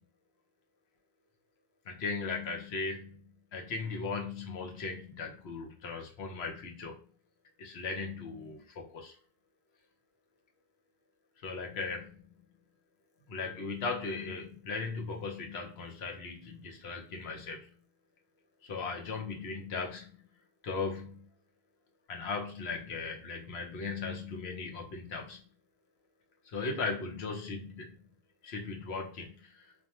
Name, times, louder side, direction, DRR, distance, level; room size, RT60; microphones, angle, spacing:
voice 1, 1.9-3.1 3.5-7.0 7.6-9.1 11.4-12.2 13.3-17.7 18.6-20.3 20.6-21.2 22.1-25.4 26.5-28.0 28.4-29.5, left 4 dB, 80° left, 2 dB, 1.0 m, -37 dB
2.5 x 2.1 x 2.8 m, 0.40 s
omnidirectional pair, 1.1 m